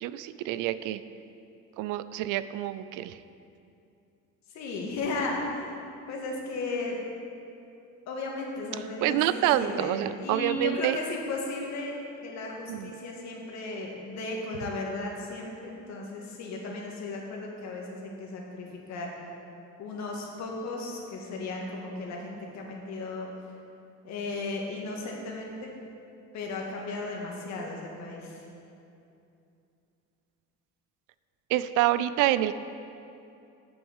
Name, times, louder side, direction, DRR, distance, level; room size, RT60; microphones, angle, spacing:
voice 1, 0.0-1.0 1.8-3.2 9.0-11.0 12.7-12.9 31.5-32.5, right 13 dB, 85° right, 14 dB, 0.5 m, -27 dB
voice 2, 4.5-5.4 6.1-7.0 8.1-12.0 12.2-19.1 19.8-23.3 24.0-25.7 26.3-28.5, left 3 dB, 65° left, -1 dB, 1.8 m, -35 dB
7.8 x 6.3 x 7.3 m, 2.7 s
cardioid pair, 145°, 31 cm